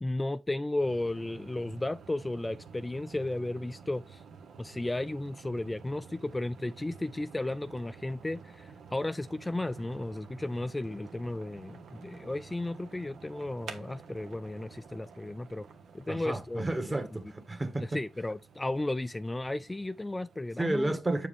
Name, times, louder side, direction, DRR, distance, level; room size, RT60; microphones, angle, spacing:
voice 1, 0.0-4.2 4.6-15.7 15.9-17.0 17.8-21.0, left 2 dB, 20° left, 0.4 m, -34 dB
sound 1, 0.8-20.6, right 5 dB, 80° right, 1.0 m, -51 dB
voice 2, 16.1-17.8 20.6-21.3, right 2 dB, 25° right, 1.7 m, -31 dB
7.5 x 4.7 x 3.6 m
cardioid pair, 60°, 0 cm